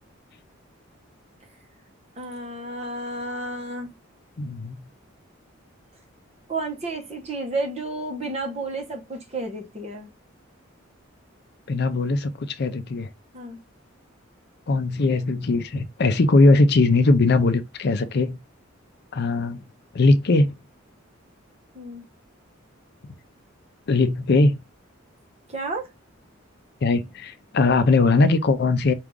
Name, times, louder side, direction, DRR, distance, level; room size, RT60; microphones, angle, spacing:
voice 1, 2.2-3.9 6.5-10.1 13.3-13.6 21.7-22.0 25.5-25.9, right 2 dB, 30° right, 1.0 m, -31 dB
voice 2, 4.4-4.8 11.7-13.1 14.7-18.4 19.1-19.6 19.9-20.5 23.9-24.6 26.8-28.9, left 3 dB, 55° left, 0.5 m, -20 dB
4.7 x 2.5 x 3.6 m
head